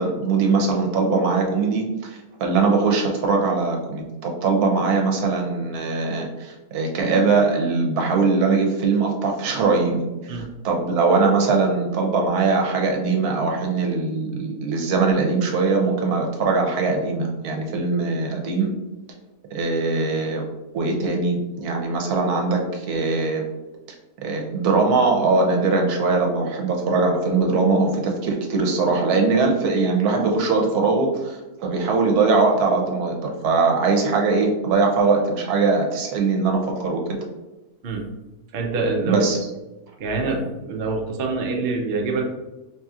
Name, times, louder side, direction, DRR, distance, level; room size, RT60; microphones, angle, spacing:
voice 1, 0.0-18.7 19.5-20.4 20.7-23.4 24.2-37.0 39.0-39.4, right 4 dB, 80° right, 1 dB, 1.2 m, -21 dB
voice 2, 38.5-39.2 40.0-42.2, right 3 dB, 55° right, 1 dB, 0.6 m, -25 dB
4.9 x 2.8 x 2.4 m, 1.0 s
omnidirectional pair, 1.6 m